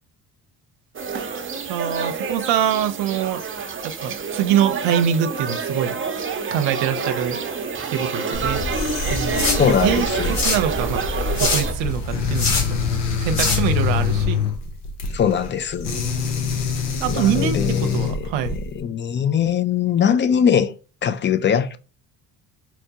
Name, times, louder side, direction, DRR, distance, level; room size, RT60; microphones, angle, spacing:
sound 1, 0.9-11.7, right 5 dB, 25° right, 0.7 m, -28 dB
voice 1, 1.7-3.4 3.8-6.0 6.5-7.4 7.9-8.6 9.1-9.5 9.8-11.0 11.4-12.8 13.2-14.4 17.0-18.6, right 9 dB, 70° right, 0.7 m, -24 dB
sound 2, 8.3-14.2, left 3 dB, 65° left, 1.9 m, -26 dB
sound 3, 8.7-18.8, left 6 dB, 80° left, 0.9 m, -26 dB
voice 2, 9.6-10.3 15.1-15.9 17.1-18.3 18.7-20.7 21.0-21.8, left 8 dB, 25° left, 0.4 m, -21 dB
4.3 x 2.2 x 2.8 m
hypercardioid pair, 60°, 46 cm